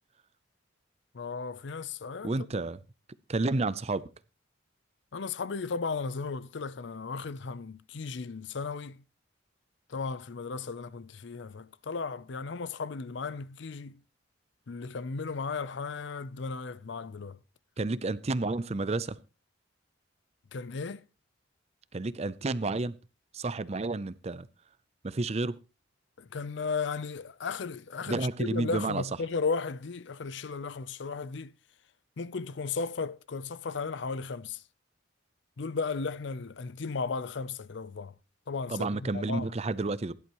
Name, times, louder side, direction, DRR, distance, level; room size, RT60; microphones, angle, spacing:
voice 1, 1.1-2.5 5.1-9.0 9.9-14.0 14.7-17.4 20.5-21.0 26.2-31.5 32.2-34.6 35.6-38.1 38.5-39.5, left 4 dB, 60° left, 0.5 m, -35 dB
voice 2, 2.2-2.8 3.3-4.0 17.8-19.2 21.9-23.0 23.3-24.5 25.0-25.6 28.1-29.0 38.7-40.1, right 3 dB, 35° right, 0.5 m, -30 dB
16.5 x 11.0 x 3.0 m
head